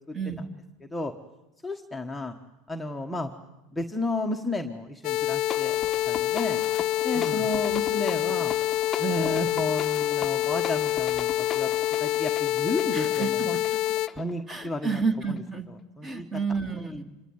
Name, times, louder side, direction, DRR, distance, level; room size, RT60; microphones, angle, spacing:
voice 1, 0.1-0.5 7.1-7.4 12.9-13.3 14.5-15.7 16.0-17.0, right 5 dB, 20° right, 7 dB, 2.7 m, -30 dB
voice 2, 0.8-1.1 1.6-2.3 2.7-3.3 3.7-5.8 6.0-6.6 7.0-8.5 9.0-11.7 12.0-13.6 14.1-15.0 15.3-15.4 15.7-16.3 16.8-16.9, left 1 dB, 5° left, 1 dB, 1.4 m, -32 dB
sound 1, 5.0-14.1, left 15 dB, 50° left, 0.9 m, -26 dB
sound 2, 5.2-15.5, left 7 dB, 20° left, 1.1 m, -39 dB
26.5 x 23.0 x 9.5 m, 0.98 s
supercardioid pair, 140°, 0 cm